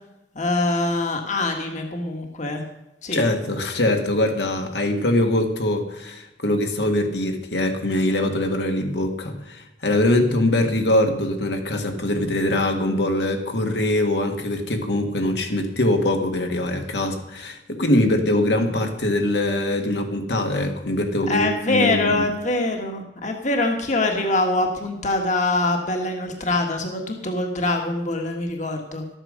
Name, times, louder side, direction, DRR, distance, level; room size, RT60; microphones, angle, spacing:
voice 1, 0.3-2.6 3.0-3.2 21.3-29.0, left 2 dB, 45° left, 3 dB, 1.6 m, -24 dB
voice 2, 3.1-22.3, left 1 dB, 75° left, 4 dB, 1.7 m, -23 dB
13.0 x 8.9 x 6.5 m, 0.91 s
head